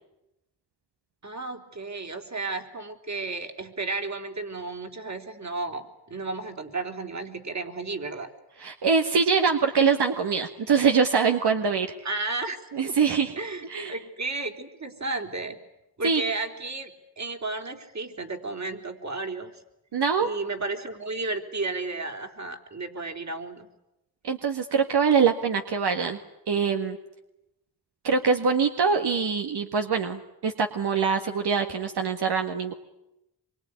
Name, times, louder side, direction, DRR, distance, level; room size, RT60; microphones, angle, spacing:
voice 1, 1.2-8.3 12.0-13.0 13.4-15.6 16.0-19.6 20.2-23.7, right 3 dB, 40° right, 5 dB, 3.8 m, -33 dB
voice 2, 8.6-11.9 12.7-13.4 13.7-13.9 16.0-16.2 19.9-20.3 24.2-26.2 26.5-27.0 28.0-32.7, right 5 dB, 75° right, 5 dB, 1.9 m, -23 dB
26.0 x 24.0 x 9.7 m, 0.89 s
cardioid pair, 80°, 40 cm